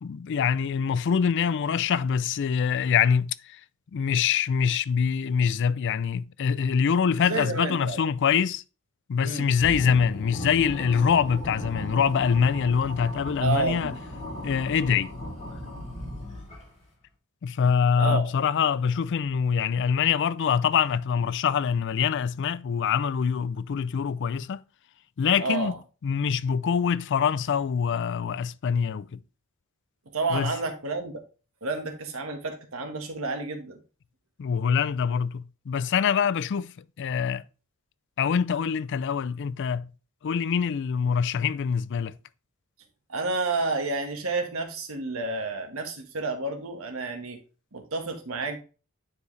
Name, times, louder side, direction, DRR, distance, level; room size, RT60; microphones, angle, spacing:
voice 1, 0.0-3.6 3.9-8.6 9.1-13.9 14.4-15.1 17.4-24.6 25.2-25.7 26.0-29.2 30.3-30.5 34.4-36.7 37.0-37.4 38.2-39.9 40.2-42.1, left 7 dB, 55° left, 0.4 m, -24 dB
voice 2, 7.2-8.0 9.2-9.5 13.4-14.0 18.0-18.2 25.4-25.8 30.0-31.2 31.6-33.8 43.1-47.4 47.7-48.6, right 3 dB, 70° right, 1.5 m, -30 dB
sound 1, 9.6-16.8, left 1 dB, 30° left, 3.2 m, -37 dB
9.7 x 4.6 x 3.2 m
head